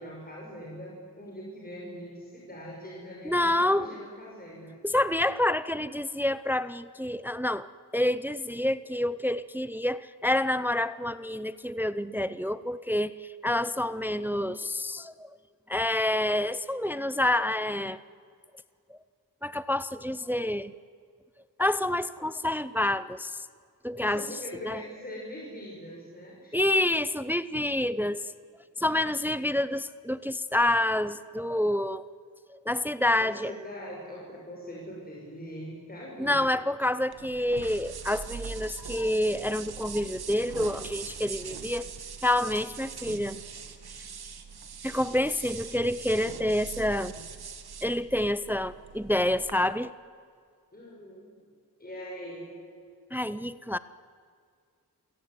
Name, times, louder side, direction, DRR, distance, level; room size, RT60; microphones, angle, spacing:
voice 1, 0.0-4.8 14.2-14.3 24.0-26.7 33.2-36.4 50.7-51.3 51.8-52.5, equal, 25° left, -3 dB, 6.1 m, -42 dB
voice 2, 3.2-3.9 4.8-7.7 7.9-15.3 15.7-18.0 18.9-19.0 19.4-20.7 21.6-23.4 23.8-24.2 24.6-24.8 26.5-28.2 28.8-32.1 32.7-33.5 36.2-41.9 42.2-43.4 44.8-47.1 47.8-49.9 53.1-53.8, left 1 dB, 5° right, 15 dB, 0.6 m, -28 dB
sound 1, 37.1-49.5, right 6 dB, 70° right, 2.1 m, -42 dB
28.0 x 17.5 x 9.6 m, 2.2 s
wide cardioid pair, 105°, 39 cm